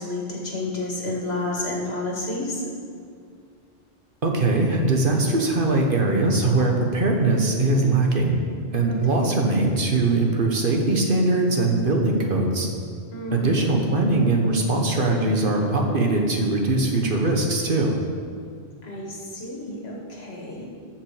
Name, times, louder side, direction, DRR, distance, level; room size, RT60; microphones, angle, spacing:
voice 1, 0.0-2.6 8.9-9.4 13.1-13.6 18.8-20.7, left 2 dB, 70° left, -1 dB, 2.0 m, -30 dB
voice 2, 4.2-8.4 8.7-12.7 13.3-18.0, right 2 dB, 55° right, 1 dB, 1.4 m, -21 dB
14.0 x 6.0 x 4.9 m, 2.2 s
omnidirectional pair, 1.1 m